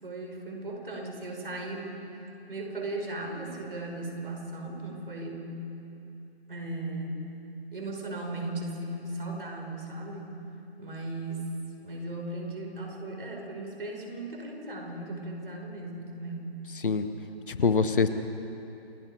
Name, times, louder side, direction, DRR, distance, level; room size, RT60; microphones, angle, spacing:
voice 1, 0.0-2.0 2.5-5.5 6.5-7.3 7.7-10.3 10.8-11.5 11.8-16.5, right 2 dB, 60° right, 1 dB, 5.5 m, -37 dB
voice 2, 16.8-17.1 17.5-18.1, left 5 dB, 55° left, 10 dB, 1.2 m, -24 dB
28.5 x 19.0 x 4.9 m, 2.9 s
figure-of-eight pair, 150°, 32 cm